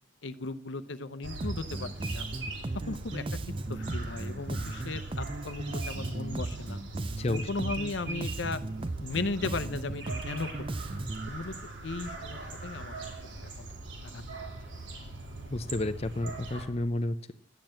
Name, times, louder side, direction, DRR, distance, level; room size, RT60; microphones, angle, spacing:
voice 1, 0.2-2.3 2.7-3.2 3.7-6.8 7.3-8.6 9.0-10.5 11.3-11.5 11.8-13.0 13.6-13.7 14.1-14.2, left 3 dB, 70° left, 13 dB, 0.7 m, -36 dB
sound 1, 1.2-16.7, right 2 dB, 70° right, 3.2 m, -41 dB
Bass guitar, 1.4-11.3, right 2 dB, 25° right, 0.5 m, -36 dB
voice 2, 7.2-7.5 15.5-17.3, left 1 dB, 30° left, 8 dB, 0.6 m, -31 dB
12.0 x 9.0 x 7.6 m, 0.63 s
head